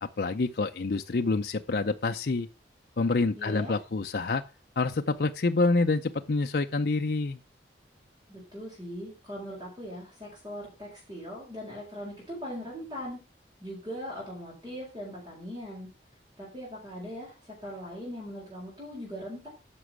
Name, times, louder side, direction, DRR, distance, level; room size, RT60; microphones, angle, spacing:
voice 1, 0.0-2.5 3.0-4.4 4.8-7.4, left 3 dB, 55° left, 6 dB, 0.5 m, -27 dB
voice 2, 3.4-3.7 8.3-13.2 13.6-15.9 16.4-17.4 17.6-19.5, equal, 20° right, -6 dB, 4.7 m, -40 dB
9.8 x 6.1 x 6.2 m, 0.32 s
head